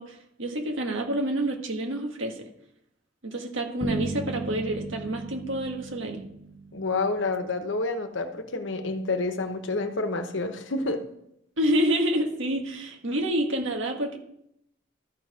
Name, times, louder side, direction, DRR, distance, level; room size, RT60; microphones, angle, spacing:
voice 1, 0.0-2.5 3.2-6.2 11.6-14.2, right 1 dB, 80° right, 3 dB, 1.5 m, -28 dB
sound 1, 3.8-7.5, right 2 dB, 15° right, 1.0 m, -37 dB
voice 2, 6.7-11.0, left 3 dB, 70° left, 7 dB, 1.0 m, -29 dB
13.5 x 4.6 x 5.0 m, 0.75 s
head